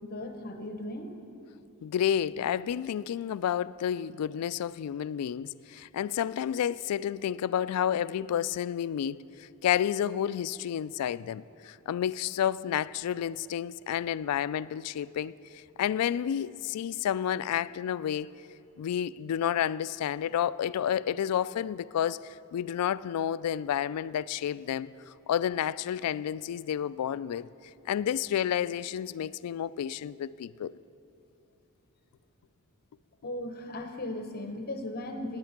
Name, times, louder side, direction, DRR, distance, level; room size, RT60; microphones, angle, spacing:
voice 1, 0.0-1.2 33.2-35.4, left 1 dB, 45° left, 1.1 m, -37 dB
voice 2, 1.8-9.2 9.6-18.3 18.8-27.5 27.9-30.7, left 9 dB, 90° left, 0.3 m, -30 dB
17.5 x 8.9 x 5.9 m
head